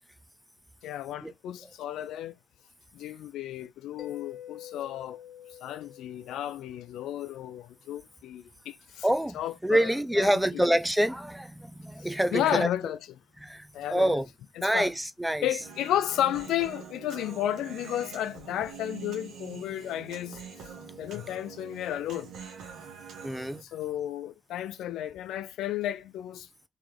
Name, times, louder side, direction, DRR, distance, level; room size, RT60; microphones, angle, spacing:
voice 1, 0.8-2.3 2.9-5.2 5.6-9.1 9.3-10.6 12.0-13.0 13.7-14.2 14.6-14.9 15.4-20.7 21.0-22.3 23.6-26.5, left 12 dB, 85° left, 0.3 m, -33 dB
Mallet percussion, 4.0-7.5, left 10 dB, 55° left, 1.0 m, -47 dB
voice 2, 9.0-12.7 13.4-14.3 14.6-15.5 23.2-23.6, right 1 dB, 5° right, 0.6 m, -26 dB
Human voice, 15.6-23.6, right 6 dB, 80° right, 1.2 m, -45 dB
3.7 x 2.9 x 3.2 m
supercardioid pair, 65°, 0 cm